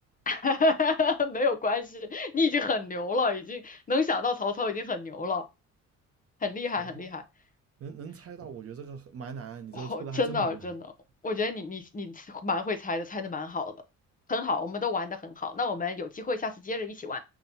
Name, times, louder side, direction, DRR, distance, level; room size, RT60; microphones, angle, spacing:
voice 1, 0.3-5.4 6.4-7.2 9.7-10.8 11.2-13.7 14.3-17.2, left 3 dB, 30° left, 0.6 m, -29 dB
voice 2, 6.8-7.1 7.8-10.7, right 6 dB, 50° right, 0.7 m, -40 dB
5.7 x 2.2 x 2.7 m
cardioid pair, 90°, 30 cm